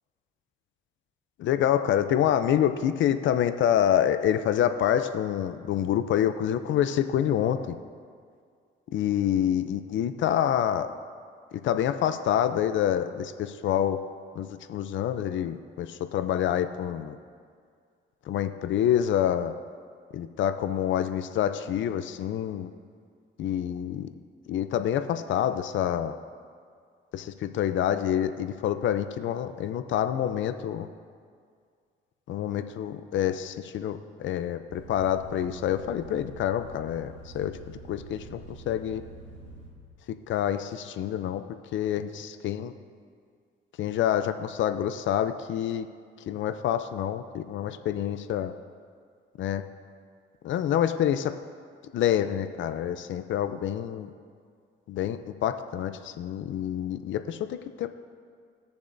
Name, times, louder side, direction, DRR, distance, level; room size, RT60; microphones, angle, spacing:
voice 1, 1.4-7.8 8.9-10.9 11.6-14.0 14.4-17.2 18.3-19.5 20.1-22.7 23.4-24.1 24.5-26.2 27.1-30.9 32.3-37.6 37.9-39.0 40.3-41.4 41.7-42.7 43.8-45.9 46.3-48.5 49.4-49.6 50.4-51.3 51.9-54.1 54.9-57.9, left 10 dB, 70° left, 10 dB, 0.5 m, -27 dB
sound 1, 34.7-39.7, right 2 dB, 65° right, 2.7 m, -46 dB
19.5 x 6.9 x 2.6 m, 2.1 s
cardioid pair, 90°, 20 cm